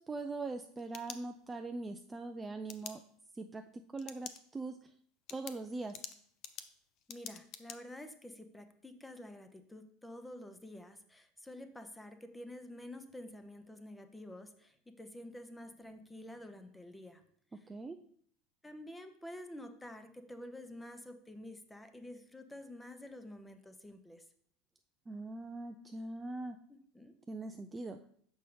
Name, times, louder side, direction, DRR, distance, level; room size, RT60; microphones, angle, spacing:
voice 1, 0.0-3.0 3.3-4.9 5.3-6.0 17.5-18.0 25.1-26.6 27.3-28.0, right 3 dB, 15° right, 6 dB, 0.3 m, -42 dB
sound 1, 0.5-1.7 2.7-2.9 4.0-4.4 4.8-4.9 5.3-7.8, left 9 dB, 45° left, 0.5 m, -47 dB
voice 2, 7.1-17.2 18.6-24.2 26.7-27.1, left 1 dB, 10° left, 8 dB, 0.7 m, -49 dB
6.6 x 5.3 x 3.3 m, 0.62 s
figure-of-eight pair, 75°, 0 cm